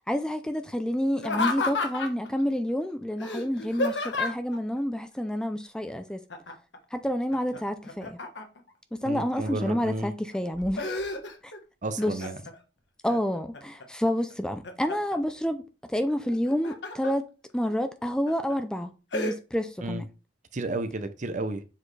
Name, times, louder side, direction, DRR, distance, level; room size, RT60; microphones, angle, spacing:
voice 1, 0.1-6.2 6.9-8.2 9.0-11.0 11.4-11.5 12.0-12.2 13.0-15.6 15.9-17.3 17.5-20.1, equal, 5° left, 0.4 m, -29 dB
Laughter, 1.2-2.3 3.2-4.6 6.3-6.8 7.1-8.7 9.3-9.9 10.3-11.6 12.0-12.6 13.1-13.8 14.3-15.2 16.3-17.1 17.6-17.7 18.3-18.5 19.1-19.3, left 3 dB, 80° left, 1.2 m, -32 dB
voice 2, 9.0-10.1 11.8-12.4 19.8-20.0 20.5-21.6, right 2 dB, 45° right, 0.7 m, -32 dB
7.3 x 4.2 x 3.2 m
head